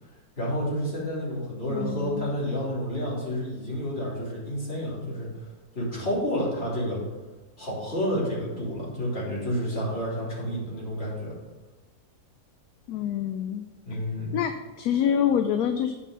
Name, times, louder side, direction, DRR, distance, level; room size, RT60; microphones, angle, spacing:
voice 1, 0.4-5.3 5.7-7.0 7.6-11.3 13.9-14.4, equal, 35° left, -7 dB, 3.6 m, -30 dB
voice 2, 1.7-2.3 12.9-13.6 14.3-15.9, left 9 dB, 75° left, 8 dB, 1.0 m, -26 dB
8.5 x 5.2 x 5.5 m, 1.2 s
omnidirectional pair, 1.7 m